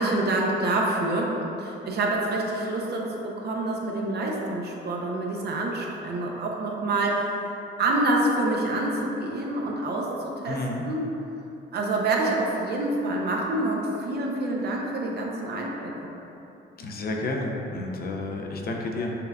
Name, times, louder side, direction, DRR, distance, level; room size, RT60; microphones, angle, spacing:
voice 1, 0.0-7.3 7.8-10.6 10.9-11.1 11.7-15.9, right 2 dB, 55° right, -1 dB, 0.6 m, -27 dB
voice 2, 10.4-10.8 16.8-19.2, left 2 dB, 50° left, 1 dB, 0.5 m, -31 dB
6.5 x 2.3 x 2.3 m, 3.0 s
cardioid pair, 90°, 20 cm